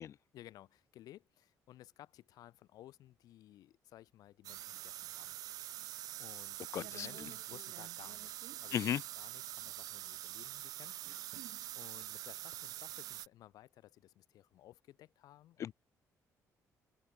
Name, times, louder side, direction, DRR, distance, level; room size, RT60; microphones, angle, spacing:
voice 1, 0.3-5.4 6.2-11.4 11.8-15.7, left 14 dB, 80° left, 5.2 m, -57 dB
sound 1, 4.4-13.3, right 14 dB, 75° right, 0.4 m, -45 dB
voice 2, 6.7-7.1 8.7-9.0 15.6-15.7, left 10 dB, 55° left, 0.4 m, -35 dB
cardioid pair, 120°, 6 cm